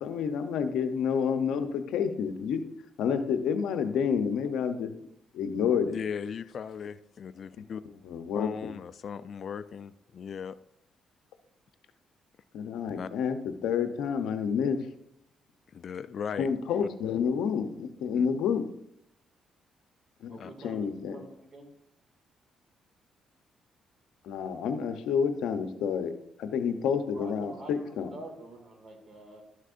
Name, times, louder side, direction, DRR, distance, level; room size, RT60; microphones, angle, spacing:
voice 1, 0.0-2.6 3.0-4.9 5.3-6.0 7.6-7.7 8.0-8.7 12.5-14.8 16.4-18.7 20.2-20.4 20.6-21.2 24.2-26.1 26.4-28.1, left 7 dB, 85° left, 8 dB, 0.7 m, -29 dB
voice 2, 5.9-7.8 8.4-10.6 13.0-13.1 15.7-16.5 16.8-16.9 18.1-18.3 20.4-20.5, left 7 dB, 55° left, 14 dB, 0.3 m, -37 dB
voice 3, 20.3-21.7 27.1-29.4, right 2 dB, 45° right, 3 dB, 2.1 m, -47 dB
12.5 x 6.4 x 2.5 m, 0.77 s
cardioid pair, 90°, 0 cm